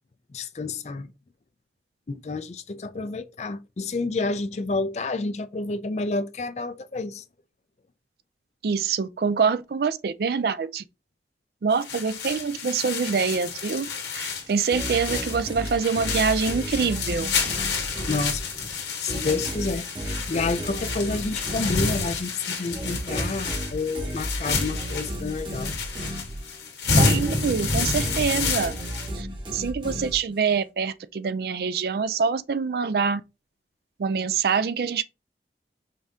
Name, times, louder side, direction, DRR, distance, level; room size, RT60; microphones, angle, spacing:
voice 1, 0.3-1.1 2.1-7.2 18.1-18.5 19.0-25.7, left 3 dB, 40° left, 0.4 m, -29 dB
voice 2, 8.6-10.8 11.6-13.9 14.1-17.3 27.0-28.7 29.1-33.2 34.0-35.0, right 5 dB, 60° right, 0.4 m, -25 dB
sound 1, 11.7-29.1, left 4 dB, 80° left, 1.4 m, -29 dB
sound 2, 14.7-18.7 19.1-26.7 27.1-30.6, right 1 dB, 25° right, 0.9 m, -34 dB
5.1 x 2.7 x 3.6 m
head